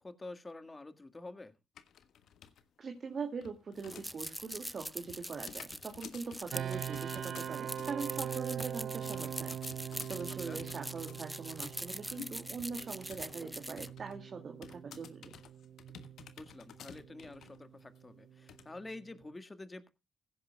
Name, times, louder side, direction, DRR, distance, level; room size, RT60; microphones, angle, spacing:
voice 1, 0.0-1.5 10.5-10.6 16.4-19.9, left 2 dB, 20° left, 10 dB, 1.8 m, -48 dB
sound 1, 1.8-2.6 2.9-4.4 4.6-13.4 13.7-14.2 14.6-17.6 18.0-18.1 18.5-18.6, left 8 dB, 70° left, 1.4 m, -53 dB
voice 2, 2.8-9.6 10.1-15.3, right 5 dB, 45° right, 4 dB, 2.2 m, -42 dB
sound 2, 3.8-13.9, equal, 5° right, 0.6 m, -43 dB
sound 3, 6.5-19.3, right 9 dB, 60° right, 0.6 m, -43 dB
16.5 x 14.5 x 2.3 m, 0.27 s
cardioid pair, 90°, 0 cm